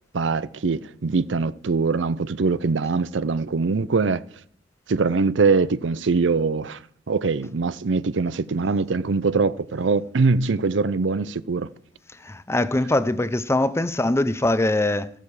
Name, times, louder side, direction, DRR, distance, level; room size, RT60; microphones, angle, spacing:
voice 1, 0.1-4.2 4.9-6.8 7.1-11.7, right 4 dB, 85° right, 0.6 m, -22 dB
voice 2, 12.2-15.1, left 1 dB, 15° left, 0.6 m, -22 dB
14.0 x 11.5 x 4.9 m
head